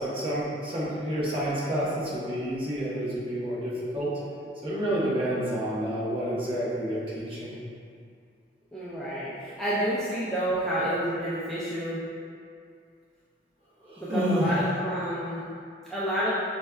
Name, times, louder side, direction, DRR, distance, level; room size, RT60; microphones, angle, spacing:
voice 1, 0.0-4.1 4.6-7.6 13.8-14.6, equal, 30° right, -9 dB, 0.9 m, -29 dB
voice 2, 8.7-12.0 14.0-15.5 15.9-16.3, equal, ahead, -11 dB, 0.3 m, -29 dB
5.2 x 2.2 x 2.3 m, 2.3 s
head